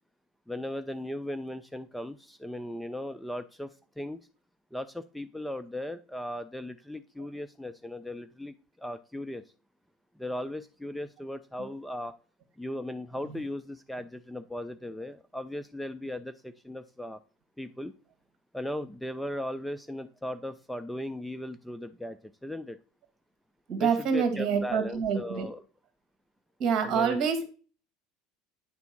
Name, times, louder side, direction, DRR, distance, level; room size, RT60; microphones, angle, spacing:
voice 1, 0.5-4.2 4.7-9.4 10.2-12.1 12.6-17.2 17.6-17.9 18.5-22.8 23.8-25.6 26.8-27.3, left 1 dB, ahead, 11 dB, 0.3 m, -37 dB
voice 2, 23.7-25.5 26.6-27.4, right 6 dB, 45° right, 7 dB, 2.0 m, -26 dB
9.4 x 3.5 x 6.0 m, 0.38 s
supercardioid pair, 140°, 0 cm